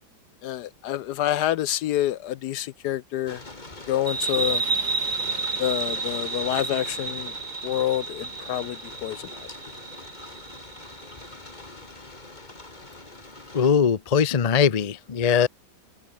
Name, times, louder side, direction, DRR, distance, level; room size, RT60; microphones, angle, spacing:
voice 1, 0.4-3.4 3.9-4.6 5.6-7.3 7.6-9.5, left 12 dB, 70° left, 1.0 m, -27 dB
sound 1, 3.3-13.7, left 2 dB, 25° left, 2.9 m, -43 dB
sound 2, 4.1-11.3, right 4 dB, 55° right, 3.9 m, -31 dB
voice 2, 13.5-15.5, left 7 dB, 50° left, 0.4 m, -21 dB
omnidirectional pair, 2.1 m